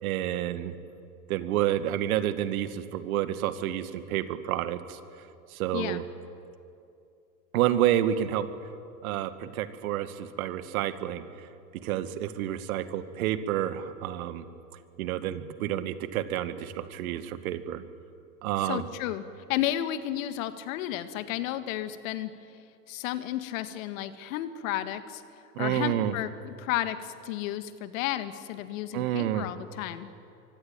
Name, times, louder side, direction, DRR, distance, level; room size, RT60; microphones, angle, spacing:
voice 1, 0.0-0.7 1.3-5.0 5.5-6.0 7.5-8.5 9.0-11.2 11.8-14.4 15.0-17.8 18.4-18.9 25.6-26.1 28.9-29.5, right 12 dB, 55° right, 11 dB, 2.0 m, -29 dB
voice 2, 18.6-19.2 19.5-22.3 22.9-25.2 25.6-30.1, left 13 dB, 55° left, 11 dB, 1.9 m, -32 dB
24.5 x 24.0 x 9.1 m, 2.6 s
hypercardioid pair, 105°, 49 cm